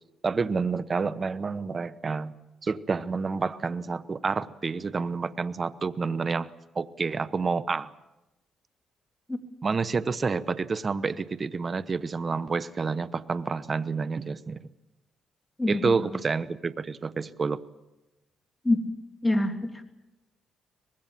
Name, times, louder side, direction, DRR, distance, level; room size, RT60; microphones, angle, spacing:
voice 1, 0.2-2.3 2.6-7.9 9.6-14.6 15.7-17.6, right 4 dB, 35° right, 15 dB, 1.0 m, -29 dB
voice 2, 19.2-19.8, left 2 dB, 10° left, 5 dB, 2.8 m, -25 dB
24.0 x 20.5 x 7.6 m, 1.0 s
cardioid pair, 90°, 0 cm